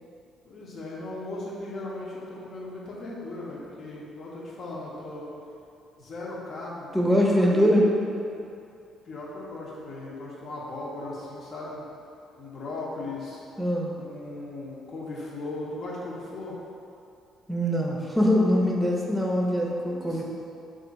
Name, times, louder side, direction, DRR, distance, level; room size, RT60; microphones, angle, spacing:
voice 1, 0.4-5.3 6.0-6.9 7.2-7.8 9.0-11.9 12.4-13.4 13.9-16.6 20.1-20.2, left 2 dB, 60° left, -5 dB, 0.9 m, -37 dB
voice 2, 6.9-7.8 13.6-13.9 17.5-20.2, equal, 5° right, -2 dB, 0.6 m, -23 dB
3.4 x 2.5 x 4.0 m, 2.6 s
supercardioid pair, 75°, 0 cm